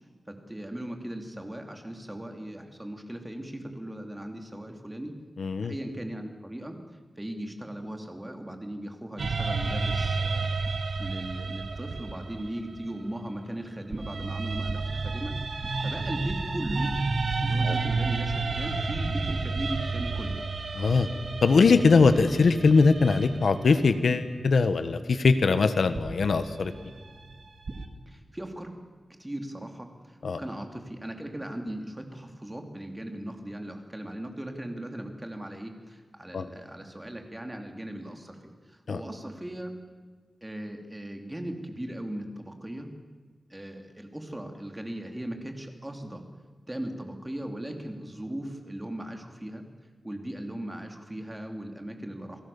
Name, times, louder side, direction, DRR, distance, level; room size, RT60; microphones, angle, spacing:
voice 1, 0.3-5.2 5.6-6.8 7.2-10.5 11.0-16.9 17.4-20.4 28.1-28.7 29.1-39.7 40.4-42.9 43.5-46.2 46.7-49.6 50.0-52.4, right 1 dB, 15° right, 4 dB, 2.8 m, -38 dB
voice 2, 5.4-5.7 17.6-17.8 20.7-21.1 21.4-26.7 30.2-30.4 36.3-36.4 38.9-39.0, left 4 dB, 80° left, 10 dB, 1.3 m, -21 dB
sound 1, 9.2-13.4 13.9-24.0 25.9-27.8, right 3 dB, 75° right, 2.1 m, -31 dB
28.0 x 17.5 x 7.1 m, 1.5 s
wide cardioid pair, 120°, 0 cm